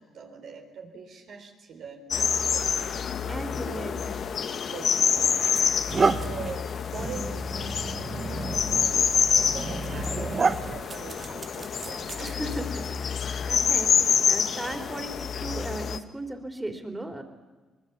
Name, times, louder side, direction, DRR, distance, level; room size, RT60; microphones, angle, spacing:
voice 1, 0.0-3.0 3.5-4.2 4.5-7.7 8.5-12.3 13.4-13.8, right 5 dB, 70° right, 3 dB, 4.1 m, -43 dB
sound 1, 2.1-16.0, left 7 dB, 55° left, 1.2 m, -27 dB
voice 2, 3.3-4.3 12.2-17.2, right 1 dB, 10° right, 6 dB, 3.4 m, -37 dB
sound 2, 4.6-4.8 5.4-12.8, right 4 dB, 35° right, 1.0 m, -31 dB
24.5 x 21.0 x 7.2 m, 1.2 s
cardioid pair, 90°, 0 cm